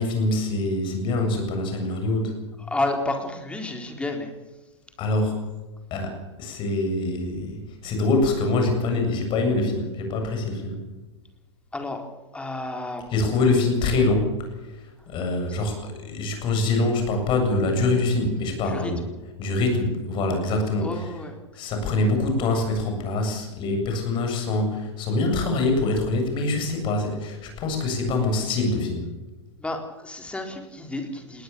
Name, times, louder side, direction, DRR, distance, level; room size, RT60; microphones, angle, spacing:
voice 1, 0.0-2.4 5.0-5.4 5.9-10.9 13.1-14.3 14.6-19.1 19.4-21.2 21.5-29.1, left 2 dB, 35° left, 4 dB, 7.7 m, -24 dB
voice 2, 2.7-4.3 11.7-12.0 12.3-13.0 18.7-18.9 20.8-21.3 29.6-31.4, left 2 dB, 5° left, 4 dB, 4.1 m, -30 dB
20.5 x 19.0 x 7.1 m, 1.1 s
figure-of-eight pair, 100°, 15 cm